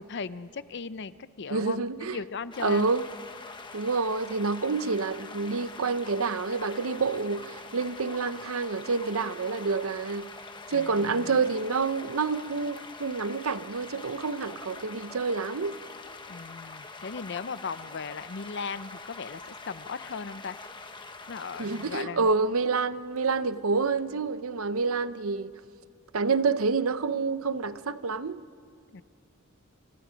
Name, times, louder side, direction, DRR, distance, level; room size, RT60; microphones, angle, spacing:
voice 1, 0.0-2.9 10.7-11.4 16.3-20.6 21.3-22.3 28.9-29.0, left 5 dB, 55° left, 0.6 m, -37 dB
voice 2, 1.5-2.2 2.6-3.1 3.7-10.3 10.7-15.8 21.6-25.5 26.1-28.4, right 4 dB, 75° right, 0.8 m, -28 dB
sound 1, 2.5-22.0, left 3 dB, 20° left, 1.2 m, -44 dB
29.0 x 28.0 x 5.2 m
head